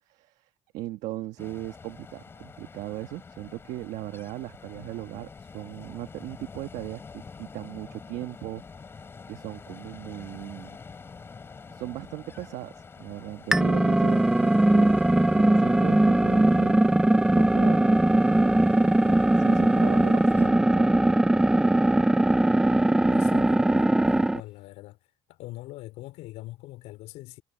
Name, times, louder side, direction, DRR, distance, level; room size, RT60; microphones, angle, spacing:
voice 1, 0.1-8.6 8.9-10.8 11.7-16.7 17.4-17.9 18.9-20.9, right 16 dB, 80° right, 1.5 m, -38 dB
Ocean, 1.4-20.5, left 5 dB, 20° left, 6.6 m, -46 dB
sound 1, 13.5-24.4, right 1 dB, 5° right, 0.7 m, -20 dB
voice 2, 23.1-25.0 25.3-27.4, left 17 dB, 75° left, 3.6 m, -42 dB
cardioid pair, 175°, 12 cm